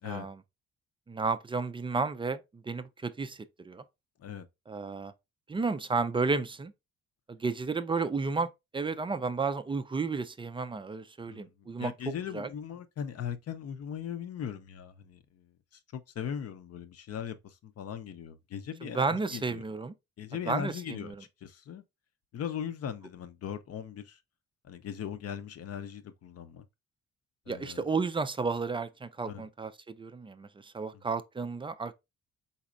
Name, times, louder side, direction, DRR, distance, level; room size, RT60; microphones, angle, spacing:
voice 1, 0.0-0.4 1.1-3.8 4.7-5.1 5.5-6.7 7.3-12.5 18.8-19.9 20.5-21.2 27.5-31.9, right 4 dB, 20° right, 0.3 m, -32 dB
voice 2, 11.3-19.6 20.2-21.1 21.4-21.8 22.3-24.2 24.6-26.7 27.5-27.8 29.2-29.4 30.9-31.0, left 8 dB, 55° left, 0.6 m, -39 dB
4.0 x 4.0 x 2.4 m
cardioid pair, 90°, 30 cm